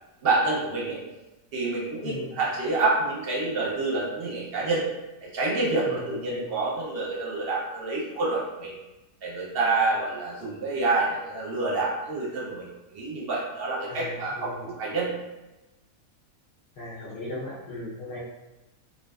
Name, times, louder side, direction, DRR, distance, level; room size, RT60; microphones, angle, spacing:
voice 1, 0.2-1.0 1.5-4.8 5.2-8.7 9.2-15.1, right 3 dB, 50° right, -5 dB, 0.7 m, -27 dB
voice 2, 5.8-6.5 13.9-14.7 16.8-18.2, left 2 dB, 60° left, -8 dB, 0.6 m, -37 dB
2.4 x 2.4 x 2.3 m, 1.0 s
omnidirectional pair, 1.6 m